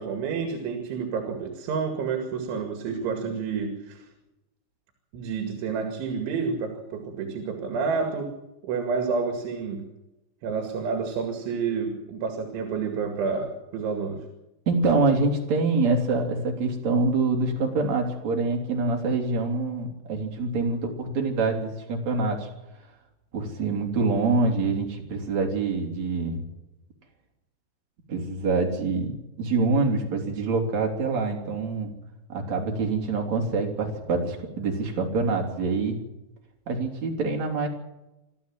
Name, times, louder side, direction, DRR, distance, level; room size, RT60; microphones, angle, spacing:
voice 1, 0.0-4.1 5.1-8.3 8.6-9.8 10.4-14.2, right 5 dB, 80° right, 4 dB, 4.5 m, -29 dB
voice 2, 14.7-22.5 23.3-26.4 28.1-31.9 32.3-36.0 36.7-37.7, right 3 dB, 40° right, 1 dB, 4.1 m, -25 dB
26.0 x 13.0 x 7.6 m, 0.97 s
omnidirectional pair, 5.4 m